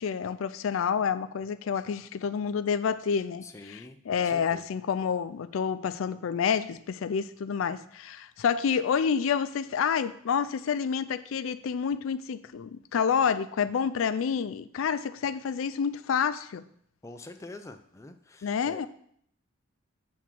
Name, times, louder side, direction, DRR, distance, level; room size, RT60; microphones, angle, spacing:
voice 1, 0.0-16.6 18.4-18.9, left 7 dB, 85° left, 0.4 m, -28 dB
voice 2, 3.4-4.6 17.0-18.8, left 2 dB, 15° left, 0.4 m, -46 dB
7.3 x 3.5 x 6.0 m
head